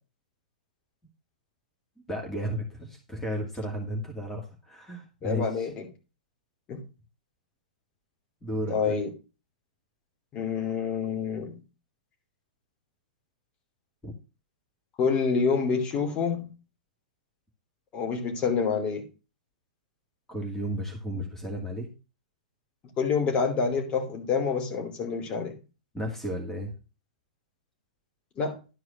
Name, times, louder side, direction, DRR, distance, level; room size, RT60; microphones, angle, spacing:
voice 1, 2.1-5.7 8.4-9.0 14.0-14.1 20.3-21.9 25.9-26.7, equal, 10° left, 2.2 m, -33 dB
voice 2, 5.2-5.9 6.7-6.8 8.7-9.1 10.3-11.6 15.0-16.5 17.9-19.1 23.0-25.5 28.4-28.5, left 5 dB, 30° left, 2.8 m, -27 dB
11.5 x 4.7 x 6.1 m
figure-of-eight pair, 105°, 4 cm